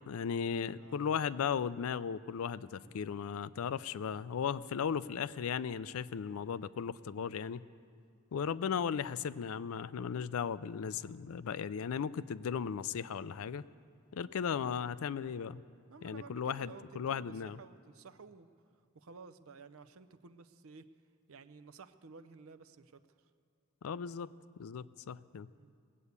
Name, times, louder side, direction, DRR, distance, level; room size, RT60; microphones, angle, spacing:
voice 1, 0.0-7.6 8.3-13.6 14.1-15.6 16.0-17.6 23.8-24.3 24.6-25.5, left 7 dB, 70° left, 17 dB, 0.4 m, -36 dB
voice 2, 0.8-1.3 2.8-3.2 4.8-5.1 15.9-18.5 18.9-20.9 21.3-23.0 25.5-25.7, right 4 dB, 65° right, 12 dB, 0.6 m, -54 dB
19.0 x 8.4 x 8.1 m, 2.4 s
head